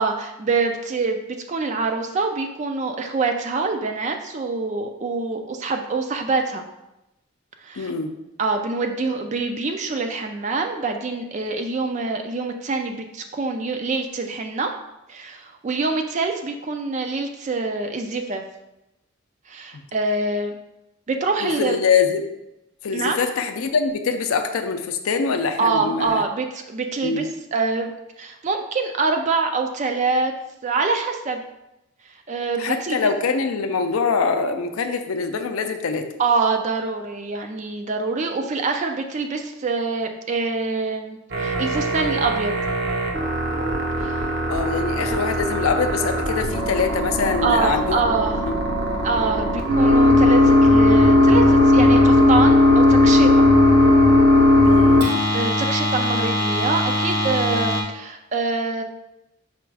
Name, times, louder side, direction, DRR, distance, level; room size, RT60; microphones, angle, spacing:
voice 1, 0.0-6.6 7.6-7.9 8.4-14.7 15.1-18.4 19.5-20.5 21.1-21.8 22.9-23.2 25.6-27.9 28.2-30.3 30.6-31.4 32.3-33.1 36.2-42.6 44.0-44.3 47.4-48.4 49.0-53.5 55.3-58.8, right 4 dB, 30° right, 5 dB, 0.3 m, -25 dB
voice 2, 7.8-8.2 19.7-19.8 21.4-22.3 22.8-26.2 27.0-27.3 32.6-36.1 44.5-48.0 48.4-48.5 54.6-55.1, left 5 dB, 70° left, 7 dB, 0.4 m, -23 dB
sound 1, 41.3-57.8, left 1 dB, 50° right, 0.7 m, -18 dB
4.9 x 2.3 x 4.6 m, 0.92 s
head